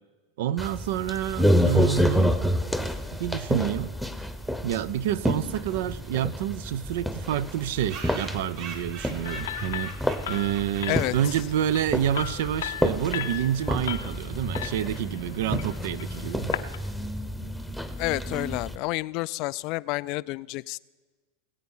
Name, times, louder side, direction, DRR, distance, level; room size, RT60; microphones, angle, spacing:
voice 1, 0.4-2.4 3.1-3.9 4.6-9.9 10.3-16.5, right 11 dB, 70° right, 18 dB, 0.5 m, -28 dB
sound 1, 0.6-18.8, equal, ahead, 0.9 m, -29 dB
sound 2, 5.7-5.8 6.0-6.1 6.4-6.5 6.7-6.8 7.4-11.6, right 5 dB, 55° right, 2.3 m, -43 dB
sound 3, 9.2-16.8, left 11 dB, 85° left, 0.7 m, -37 dB
voice 2, 18.0-20.8, left 21 dB, 50° left, 20 dB, 0.3 m, -29 dB
20.5 x 8.5 x 5.5 m, 1.4 s
supercardioid pair, 120°, 0 cm